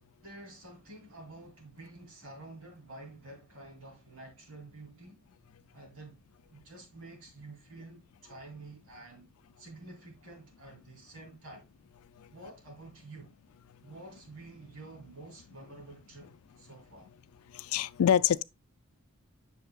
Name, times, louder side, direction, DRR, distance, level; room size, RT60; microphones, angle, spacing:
voice 1, 0.2-5.2 5.7-6.2 6.5-9.3 9.6-11.7 12.3-13.3 13.8-17.1, right 2 dB, 85° right, 2.8 m, -49 dB
voice 2, 17.5-18.4, left 9 dB, 90° left, 0.4 m, -25 dB
7.9 x 6.5 x 2.3 m
head